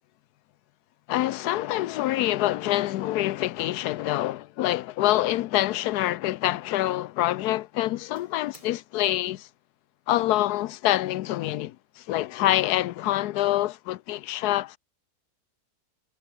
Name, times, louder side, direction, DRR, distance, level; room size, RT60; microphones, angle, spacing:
voice 1, 1.1-9.5 10.1-14.8, left 15 dB, 80° left, 1.2 m, -26 dB
Doorbell, 3.8-4.2 5.2-6.3 6.5-7.0 7.5-8.7, right 2 dB, 20° right, 3.3 m, -60 dB
omnidirectional pair, 1.7 m